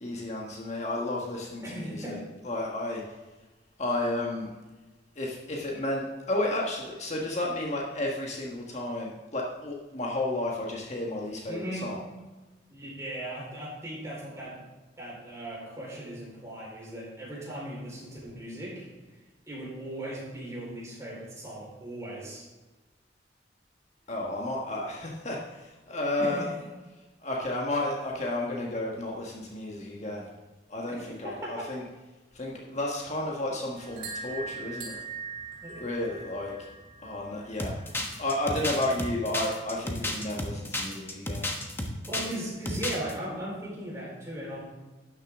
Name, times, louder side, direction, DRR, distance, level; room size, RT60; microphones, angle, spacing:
voice 1, 0.0-2.2 2.4-3.0 3.8-4.5 5.1-12.0 24.1-26.5 27.2-30.2 30.7-31.8 32.3-35.0 35.8-36.5 37.0-37.7 38.2-41.4, left 1 dB, 40° left, -2 dB, 1.4 m, -32 dB
voice 2, 1.6-2.2 11.5-12.0 12.7-14.6 15.0-18.9 19.5-22.5 26.2-26.5 30.0-30.1 30.9-31.5 35.6-35.8 42.0-44.6, right 1 dB, 15° right, -5 dB, 4.3 m, -38 dB
sound 1, 33.8-38.8, right 4 dB, 60° right, 3.6 m, -42 dB
sound 2, 37.6-42.4 42.6-43.1, left 1 dB, 15° left, 1.1 m, -32 dB
12.5 x 9.6 x 3.6 m, 1.2 s
head